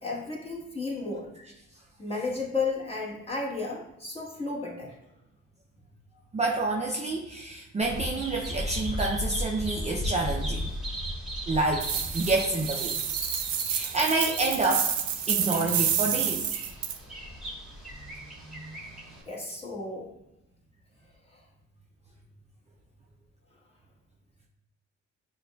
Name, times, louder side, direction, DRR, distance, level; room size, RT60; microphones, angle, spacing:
voice 1, 0.0-1.3 2.0-5.0 19.3-20.1 21.3-21.4, left 3 dB, 20° left, -4 dB, 1.3 m, -33 dB
voice 2, 6.3-10.7 11.5-12.9 13.7-14.9 15.3-16.5 18.5-18.9, right 2 dB, 25° right, -1 dB, 0.5 m, -28 dB
Bird vocalization bird call bird song, 7.8-19.2, equal, ahead, 1.5 m, -36 dB
sound 1, 11.8-17.0, right 9 dB, 70° right, 0.5 m, -29 dB
6.6 x 2.3 x 2.3 m, 0.88 s
cardioid pair, 90°, 30 cm